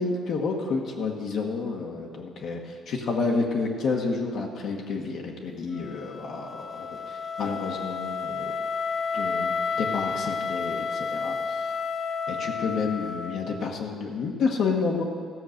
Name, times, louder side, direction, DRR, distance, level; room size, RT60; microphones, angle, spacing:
voice 1, 0.0-8.5 9.1-11.6 12.3-15.0, left 4 dB, 65° left, 0 dB, 1.3 m, -30 dB
Wind instrument woodwind instrument, 5.7-13.7, left 5 dB, 40° left, 0.5 m, -31 dB
14.0 x 6.4 x 6.5 m, 2.1 s
cardioid pair, 120°, 0 cm